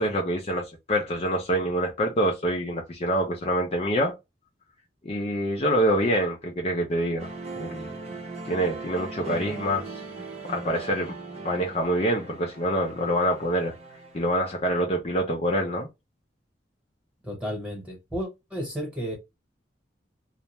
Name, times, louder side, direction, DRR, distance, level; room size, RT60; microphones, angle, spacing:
voice 1, 0.0-4.1 5.0-7.3 7.6-7.9 8.4-9.9 10.5-11.1 11.4-13.7 14.1-15.9, equal, 35° left, 0.5 m, -26 dB
sound 1, 7.2-14.7, right 3 dB, 35° right, 0.7 m, -39 dB
voice 2, 17.2-19.2, equal, 5° right, 1.1 m, -33 dB
2.5 x 2.2 x 2.9 m
head